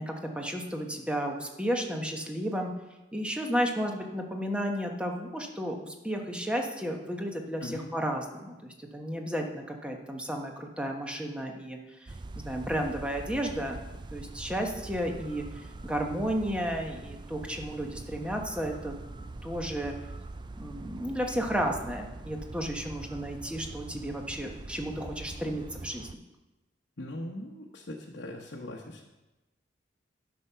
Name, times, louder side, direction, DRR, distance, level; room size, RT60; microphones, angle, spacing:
voice 1, 0.0-2.7 3.1-13.8 14.1-15.4 15.8-19.0 19.4-19.9 20.6-26.1, equal, 5° right, 2 dB, 1.1 m, -33 dB
voice 2, 7.6-7.9 27.0-29.0, left 1 dB, 75° left, -2 dB, 1.1 m, -40 dB
sound 1, 12.1-26.2, right 2 dB, 25° right, 0.4 m, -43 dB
12.0 x 6.2 x 5.7 m, 1.1 s
head